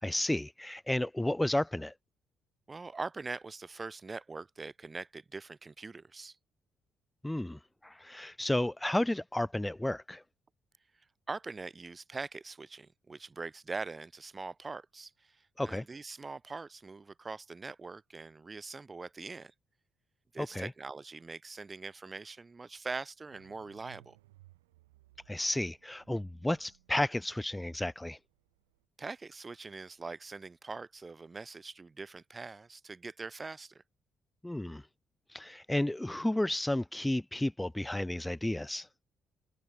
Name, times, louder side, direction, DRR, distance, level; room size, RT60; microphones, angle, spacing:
voice 1, 0.0-1.9 7.2-10.2 15.6-15.8 20.4-20.7 25.3-28.2 34.4-34.8 35.3-38.9, left 1 dB, 10° left, 0.9 m, -32 dB
voice 2, 2.7-6.4 11.3-19.5 20.3-24.2 29.0-33.8, right 4 dB, 30° right, 2.0 m, -42 dB
sound 1, 23.3-28.8, right 17 dB, 90° right, 6.4 m, -62 dB
hypercardioid pair, 50°, 0 cm